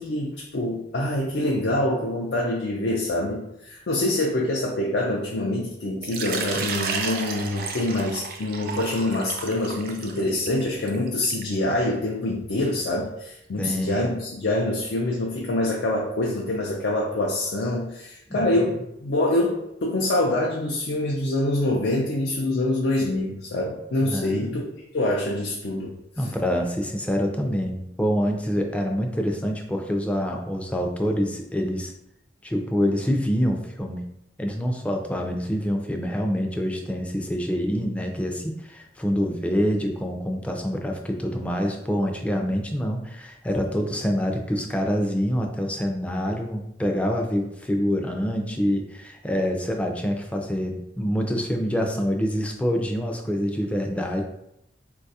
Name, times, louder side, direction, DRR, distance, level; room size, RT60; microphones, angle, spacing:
voice 1, 0.0-24.6 24.9-26.3, left 1 dB, 75° left, -2 dB, 0.5 m, -25 dB
Water / Liquid, 6.0-11.6, right 5 dB, 55° right, 0.4 m, -32 dB
voice 2, 13.6-14.1 18.3-18.5 24.0-24.6 26.2-31.9 32.4-34.1 34.4-54.2, equal, 5° left, 2 dB, 0.3 m, -26 dB
3.9 x 2.3 x 2.7 m, 0.82 s
head